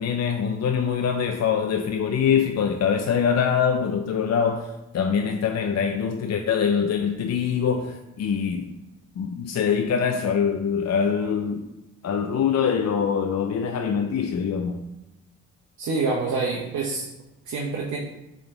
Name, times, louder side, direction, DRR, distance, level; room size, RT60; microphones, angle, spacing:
voice 1, 0.0-8.7 9.2-11.7 12.0-14.8, left 7 dB, 50° left, 0.7 m, -24 dB
voice 2, 15.8-17.1 17.4-18.0, right 4 dB, 60° right, 1.2 m, -26 dB
8.6 x 3.8 x 3.4 m
hypercardioid pair, 50°, 33 cm